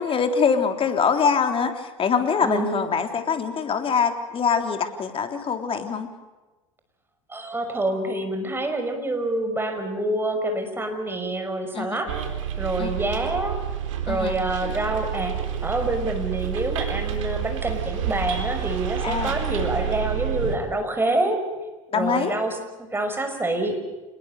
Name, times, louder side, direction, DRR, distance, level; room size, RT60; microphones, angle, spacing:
voice 1, 0.0-6.1 11.7-12.0 12.8-12.9 14.1-14.4 19.0-19.4 21.9-22.4, left 6 dB, 35° left, 6 dB, 3.5 m, -24 dB
voice 2, 2.4-2.9 7.3-12.1 12.6-13.6 14.1-21.5 21.9-23.8, right 2 dB, 15° right, 6 dB, 5.8 m, -27 dB
Bus, 12.1-20.6, right 9 dB, 75° right, 3.9 m, -29 dB
28.0 x 21.0 x 6.8 m, 1.2 s
hypercardioid pair, 80°, 17 cm